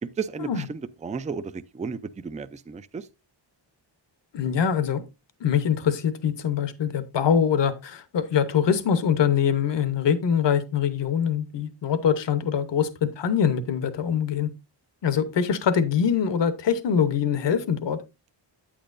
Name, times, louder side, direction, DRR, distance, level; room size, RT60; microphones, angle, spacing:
voice 1, 0.0-3.1, right 5 dB, 20° right, 0.3 m, -33 dB
voice 2, 4.3-5.0 5.4-14.5 15.0-18.0, left 8 dB, 65° left, 0.9 m, -23 dB
8.9 x 8.7 x 2.5 m
wide cardioid pair, 135°, 46 cm